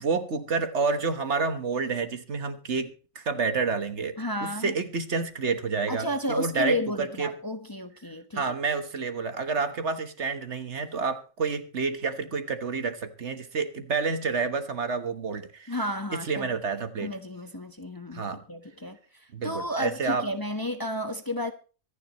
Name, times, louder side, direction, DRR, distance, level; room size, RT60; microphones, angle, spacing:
voice 1, 0.0-7.3 8.3-15.8 16.1-17.1 18.1-18.4 19.3-20.3, right 4 dB, 60° right, 1.5 m, -29 dB
voice 2, 4.2-4.7 5.9-8.4 15.7-16.5 17.0-21.5, equal, 15° left, 1.0 m, -32 dB
24.5 x 10.0 x 3.0 m
omnidirectional pair, 1.4 m